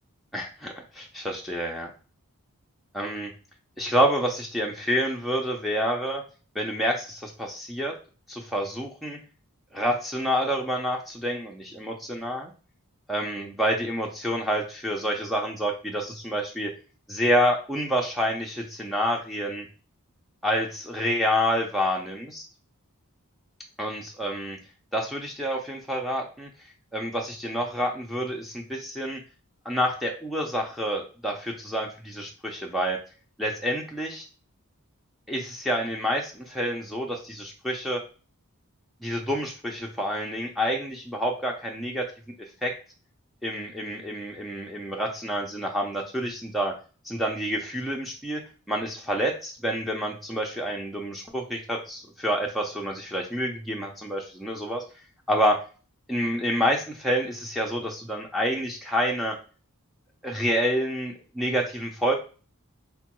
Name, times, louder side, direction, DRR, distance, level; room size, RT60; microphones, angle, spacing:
voice 1, 0.3-1.9 2.9-3.3 3.8-6.2 6.5-7.9 8.3-9.2 9.7-12.5 13.1-16.7 17.1-19.7 20.4-22.4 23.8-24.6 24.9-26.5 26.9-29.2 29.7-33.0 33.4-34.2 35.3-38.0 39.0-42.1 42.6-42.7 43.4-46.7 47.0-48.4 48.7-54.8 55.3-55.6 56.1-59.4 60.2-62.2, equal, ahead, -1 dB, 0.4 m, -28 dB
4.4 x 2.2 x 2.9 m, 0.36 s
head